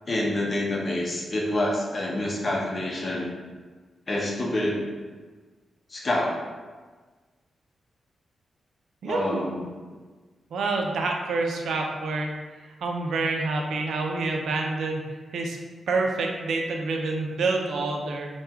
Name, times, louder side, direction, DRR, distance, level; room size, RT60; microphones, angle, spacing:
voice 1, 0.1-3.3 4.1-4.9 5.9-6.4 9.1-9.6, left 1 dB, 35° left, -2 dB, 0.8 m, -27 dB
voice 2, 9.0-9.4 10.5-12.4 12.8-15.0 15.3-15.6 15.9-18.3, right 3 dB, 85° right, 1 dB, 0.5 m, -27 dB
4.4 x 2.3 x 3.5 m, 1.4 s
wide cardioid pair, 115°, 0 cm